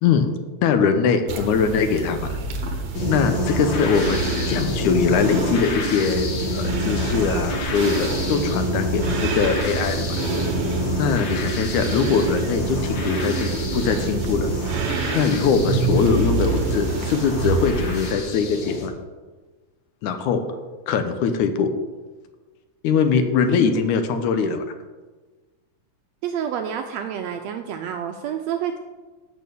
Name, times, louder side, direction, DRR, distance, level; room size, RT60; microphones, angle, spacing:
voice 1, 0.6-2.3 3.1-10.1 11.0-14.5 15.1-18.9 20.0-20.4 20.9-21.7 22.8-24.6, left 6 dB, 80° left, 8 dB, 2.2 m, -22 dB
sound 1, 1.3-18.1, right 3 dB, 60° right, 1.7 m, -28 dB
sound 2, 2.9-18.9, left 1 dB, 50° left, 1.6 m, -28 dB
voice 2, 26.2-28.8, right 8 dB, 80° right, 5 dB, 1.6 m, -28 dB
8.5 x 6.7 x 6.8 m, 1.3 s
omnidirectional pair, 3.5 m